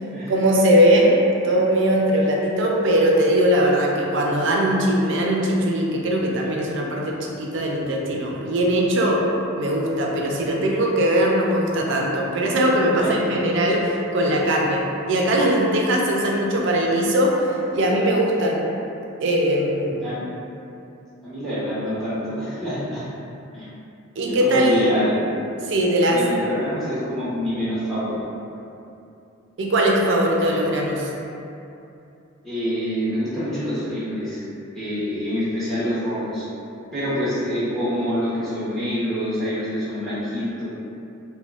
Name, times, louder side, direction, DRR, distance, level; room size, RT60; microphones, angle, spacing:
voice 1, 0.3-9.2 9.6-17.3 17.7-18.6 19.2-20.0 24.2-24.9 25.7-26.2 29.6-31.1, right 1 dB, 65° right, -2 dB, 0.4 m, -20 dB
voice 2, 21.2-23.1 23.5-23.7 24.2-25.2 26.1-28.2 32.4-34.4 34.7-36.5 36.9-40.6, equal, ahead, -12 dB, 0.8 m, -26 dB
3.5 x 2.1 x 2.4 m, 2.7 s
head